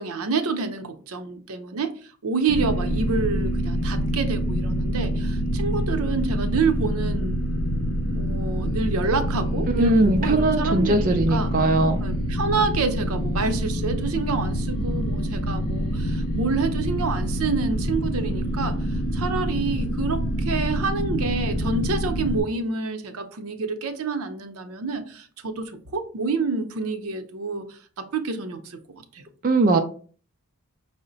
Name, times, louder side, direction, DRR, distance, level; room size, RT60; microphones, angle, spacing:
voice 1, 0.0-7.4 8.1-11.5 12.0-29.2, right 4 dB, 75° right, 0.6 m, -28 dB
sound 1, 2.5-22.4, equal, 75° left, 0.7 m, -26 dB
voice 2, 9.7-12.0 29.4-29.8, right 2 dB, 35° right, 0.4 m, -20 dB
5.5 x 2.1 x 3.9 m
head